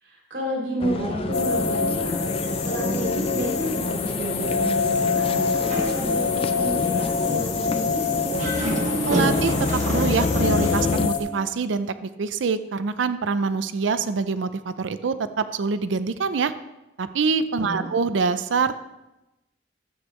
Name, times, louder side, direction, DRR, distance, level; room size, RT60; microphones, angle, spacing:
voice 1, 0.0-2.3 2.6-8.5 17.7-17.8, right 1 dB, 70° right, -3 dB, 2.6 m, -31 dB
sound 1, 0.8-11.1, left 3 dB, 30° left, 0.3 m, -28 dB
sound 2, 1.3-11.2, left 5 dB, 60° left, 1.8 m, -26 dB
Dog, 5.4-6.5 6.9-7.0 8.2-10.9, right 1 dB, 40° right, 1.2 m, -29 dB
voice 2, 9.1-16.5 17.0-18.8, right 5 dB, 90° right, 12 dB, 0.5 m, -25 dB
12.5 x 8.0 x 3.2 m, 0.97 s
head